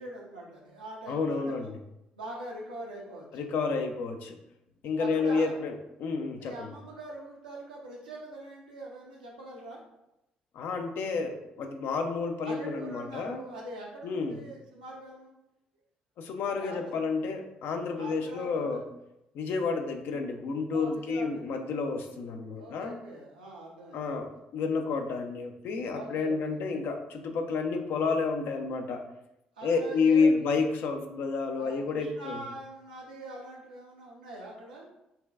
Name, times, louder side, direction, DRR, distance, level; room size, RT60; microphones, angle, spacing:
voice 1, 0.0-1.7 2.1-3.9 5.0-5.6 6.3-9.8 12.4-15.3 16.4-17.0 17.9-18.8 20.7-21.6 22.5-24.0 25.9-26.6 29.6-30.5 31.6-34.9, right 1 dB, 85° right, -3 dB, 0.6 m, -43 dB
voice 2, 1.1-1.8 3.3-4.4 4.8-6.7 10.5-13.4 14.0-14.4 16.2-18.8 19.3-23.0 23.9-29.0 29.6-32.4, left 4 dB, 60° left, 5 dB, 0.5 m, -30 dB
5.6 x 2.2 x 2.3 m, 0.88 s
figure-of-eight pair, 45°, 4 cm